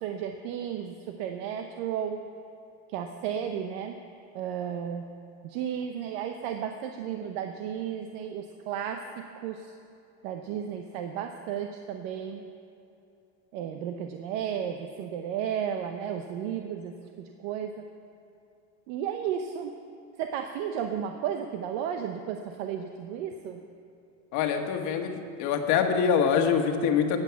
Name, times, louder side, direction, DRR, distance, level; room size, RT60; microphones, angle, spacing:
voice 1, 0.0-2.2 2.9-4.0 4.3-5.1 5.4-9.6 10.2-12.5 13.5-17.7 18.9-19.8 20.2-23.6, right 8 dB, 75° right, 6 dB, 0.9 m, -33 dB
voice 2, 24.3-25.1 25.4-27.2, left 7 dB, 60° left, 5 dB, 1.4 m, -24 dB
15.5 x 9.0 x 5.8 m, 2.7 s
cardioid pair, 140°, 33 cm